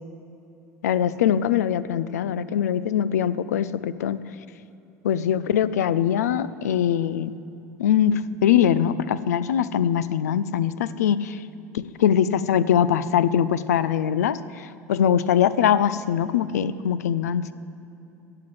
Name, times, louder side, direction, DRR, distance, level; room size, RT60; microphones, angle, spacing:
voice 1, 0.8-4.2 5.0-7.3 7.8-11.3 11.7-17.5, left 9 dB, 80° left, 16 dB, 0.4 m, -22 dB
12.5 x 7.7 x 7.6 m, 2.9 s
hypercardioid pair, 75°, 9 cm